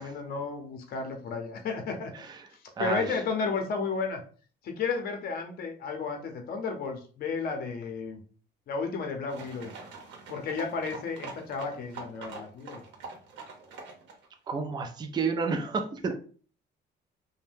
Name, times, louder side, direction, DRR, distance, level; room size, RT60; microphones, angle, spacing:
voice 1, 0.0-2.1 2.5-4.2 4.6-8.2 8.7-9.7 10.3-12.8, left 4 dB, 55° left, 4 dB, 0.7 m, -33 dB
voice 2, 2.1-2.5 2.8-3.2 14.5-16.1, right 4 dB, 25° right, 5 dB, 0.4 m, -31 dB
sound 1, 9.3-14.3, right 4 dB, 80° right, 0.8 m, -45 dB
2.6 x 2.2 x 3.4 m, 0.41 s
cardioid pair, 125°, 19 cm